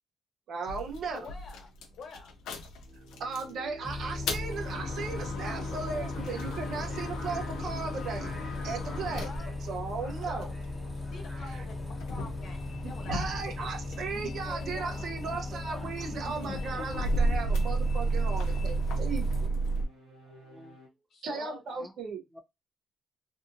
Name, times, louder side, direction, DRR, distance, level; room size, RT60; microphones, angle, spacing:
voice 1, 0.5-1.3 3.2-8.3 8.6-9.2 9.7-10.5 11.5-11.6 13.1-19.5 21.2-22.2, right 4 dB, 65° right, 0.7 m, -36 dB
sound 1, 0.7-3.5 4.0-10.8 11.5-14.2 14.5-19.9, right 2 dB, 90° left, 0.5 m, -33 dB
voice 2, 1.1-1.7 2.0-2.3 9.2-9.5 10.3-10.5 11.1-11.8 12.1-13.7 21.1-21.6, left 4 dB, 65° left, 1.0 m, -47 dB
sound 2, 2.8-8.1 8.8-18.7 19.5-20.9, left 1 dB, 85° right, 1.0 m, -51 dB
Bus, 3.8-19.5, left 2 dB, 15° left, 0.8 m, -38 dB
voice 3, 5.4-6.1 20.3-20.8 21.7-21.9 22.3-22.4, right 1 dB, 10° right, 0.5 m, -51 dB
2.7 x 2.5 x 2.5 m
cardioid pair, 90°, 0 cm